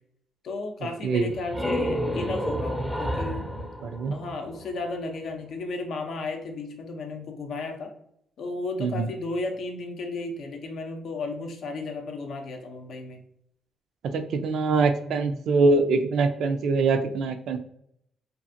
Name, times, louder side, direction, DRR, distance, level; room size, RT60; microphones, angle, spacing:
voice 1, 0.4-3.5 4.1-7.9 8.4-13.2 15.1-15.3, left 3 dB, 65° left, 4 dB, 0.5 m, -34 dB
sound 1, 1.2-4.8, equal, ahead, 0.5 m, -30 dB
voice 2, 3.8-4.1 8.8-9.1 14.1-17.6, right 3 dB, 75° right, 7 dB, 0.3 m, -23 dB
2.6 x 2.4 x 2.6 m, 0.71 s
cardioid pair, 90°, 0 cm